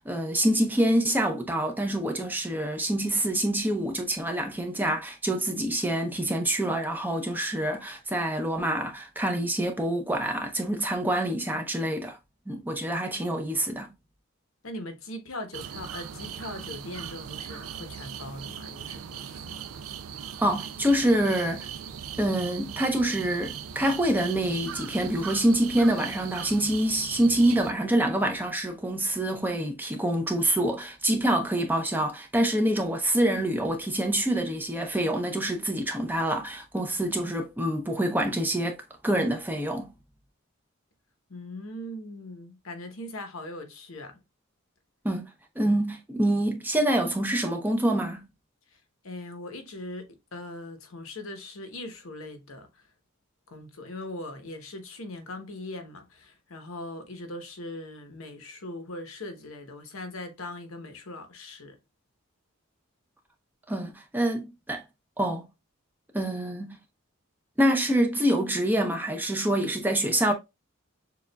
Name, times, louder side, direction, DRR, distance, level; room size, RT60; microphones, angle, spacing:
voice 1, 0.0-12.2 12.5-13.9 20.4-21.7 22.2-39.9 45.0-45.3 45.6-48.2 63.7-64.8 65.2-65.4 66.1-66.8 67.6-70.3, right 1 dB, 10° right, 0.6 m, -26 dB
voice 2, 14.6-19.8 41.3-44.2 48.7-52.9 53.5-61.8, left 1 dB, 75° left, 0.9 m, -40 dB
sound 1, 15.5-27.7, right 8 dB, 80° right, 0.4 m, -39 dB
6.8 x 2.4 x 2.2 m
head